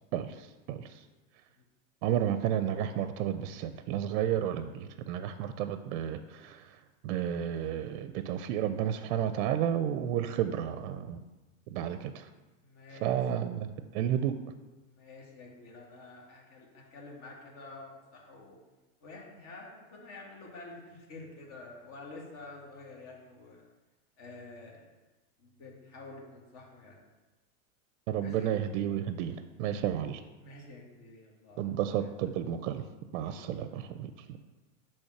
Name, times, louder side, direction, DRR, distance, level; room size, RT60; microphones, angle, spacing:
voice 1, 0.1-1.0 2.0-6.8 7.0-11.2 11.7-12.3 13.0-14.3 28.1-30.2 31.6-32.9 33.1-34.4, right 10 dB, 65° right, 10 dB, 0.5 m, -32 dB
voice 2, 12.6-13.2 14.9-18.6 19.0-23.6 24.2-24.9 25.4-27.0 28.2-28.6 30.4-32.1 33.2-33.6 34.3-34.4, left 2 dB, 40° left, -1 dB, 1.7 m, -49 dB
5.3 x 3.5 x 5.8 m, 1.1 s
supercardioid pair, 140°, 41 cm